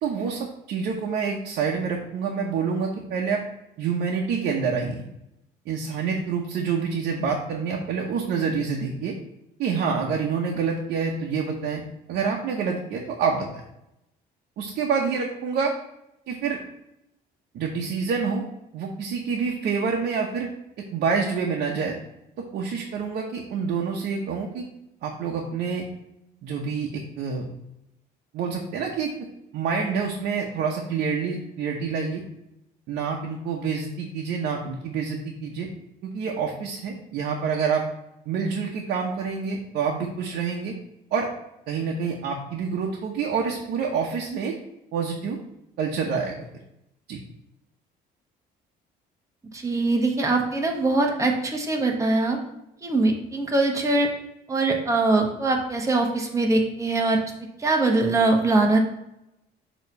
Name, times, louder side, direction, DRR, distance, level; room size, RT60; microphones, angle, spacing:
voice 1, 0.0-3.4 3.8-5.0 5.7-9.2 9.6-11.8 12.1-13.5 14.6-15.7 16.3-16.6 17.5-18.5 18.7-20.5 20.9-22.0 22.4-24.7 25.0-25.9 26.4-27.5 28.3-29.1 29.5-32.2 32.9-35.7 36.0-37.8 38.3-40.8 41.1-41.3 41.7-44.5 44.9-45.4 45.8-46.5 47.1-47.2, right 5 dB, 70° right, -1 dB, 0.9 m, -27 dB
voice 2, 49.5-52.4 52.8-54.1 54.5-57.2 57.6-58.8, right 2 dB, 20° right, 1 dB, 1.1 m, -22 dB
6.5 x 3.1 x 5.3 m, 0.85 s
cardioid pair, 110°, 17 cm